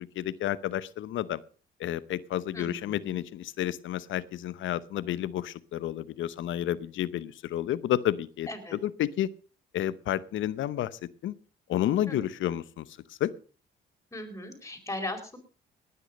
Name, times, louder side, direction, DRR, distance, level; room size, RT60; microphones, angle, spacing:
voice 1, 0.1-1.4 1.8-8.5 8.8-9.3 9.7-11.3 11.7-13.3, left 12 dB, 75° left, 17 dB, 0.8 m, -31 dB
voice 2, 2.5-3.1 8.5-8.8 12.1-12.2 14.1-15.4, left 1 dB, 15° left, 5 dB, 4.6 m, -38 dB
18.5 x 9.8 x 5.3 m, 0.39 s
cardioid pair, 90°, 20 cm